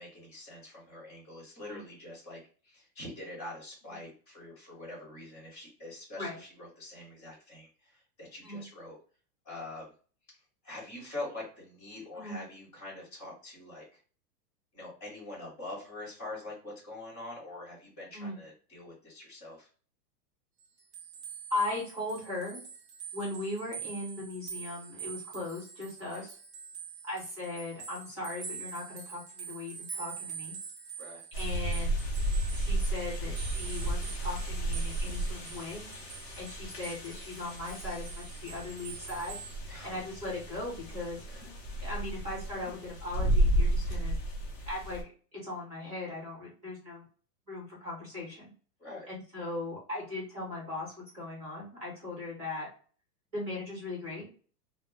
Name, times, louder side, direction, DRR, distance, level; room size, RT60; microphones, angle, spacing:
voice 1, 0.0-9.0 9.4-9.9 10.6-14.0 14.7-19.7 26.1-26.3 31.0-31.2 36.5-36.6 39.7-40.0 41.3-41.4 48.8-49.1, left 2 dB, 10° left, -8 dB, 0.8 m, -44 dB
sound 1, 20.6-39.6, right 6 dB, 45° right, 0.6 m, -45 dB
voice 2, 21.5-22.6 23.1-26.4 27.0-30.6 31.3-32.0 32.5-35.8 36.3-39.4 39.7-41.2 41.8-44.2 44.7-45.0 45.4-47.0 47.5-48.5 49.1-52.7 53.3-54.3, left 2 dB, 10° right, -8 dB, 1.0 m, -38 dB
sound 2, 31.3-45.0, right 1 dB, 40° left, 0.4 m, -33 dB
2.1 x 2.0 x 3.2 m, 0.40 s
supercardioid pair, 180°, 50 cm